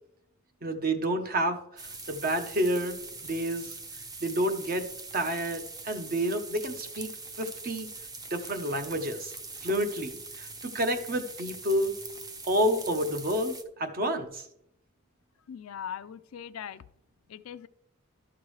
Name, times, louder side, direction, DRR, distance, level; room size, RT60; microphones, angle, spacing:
voice 1, 0.6-3.0 3.2-3.8 4.2-4.9 5.1-7.1 7.4-7.9 8.3-9.3 9.6-11.9 12.4-14.5, right 1 dB, 45° right, 7 dB, 0.9 m, -29 dB
sound 1, 1.8-13.6, right 3 dB, 20° right, 0.6 m, -43 dB
voice 2, 15.5-16.8 17.3-17.7, left 8 dB, 75° left, 13 dB, 0.4 m, -40 dB
12.0 x 6.0 x 3.2 m, 0.78 s
head